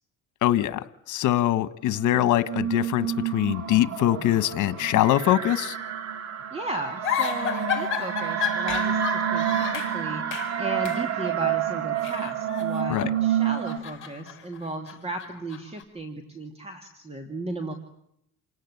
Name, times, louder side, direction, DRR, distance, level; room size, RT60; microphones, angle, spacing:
voice 1, 0.4-5.8 12.9-13.1, left 13 dB, 80° left, 14 dB, 1.6 m, -23 dB
sound 1, 1.9-13.8, right 9 dB, 55° right, 2.6 m, -29 dB
voice 2, 6.5-17.7, right 1 dB, 20° right, 6 dB, 2.6 m, -35 dB
sound 2, 7.0-10.0 10.3-10.6 10.8-11.0 12.0-13.1 13.4-15.8, left 9 dB, 40° left, 7.0 m, -32 dB
29.0 x 18.0 x 9.8 m, 0.75 s
cardioid pair, 140°, 30 cm